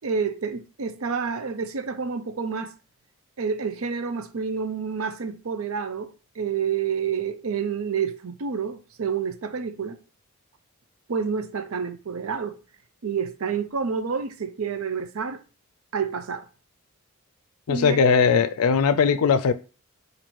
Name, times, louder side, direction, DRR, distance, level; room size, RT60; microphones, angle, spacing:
voice 1, 0.0-2.7 3.4-10.0 11.1-12.6 13.0-15.4 15.9-16.5 17.7-18.0, right 6 dB, 70° right, 0.5 m, -29 dB
voice 2, 17.7-19.5, left 6 dB, 85° left, 0.4 m, -19 dB
4.6 x 2.6 x 4.2 m
head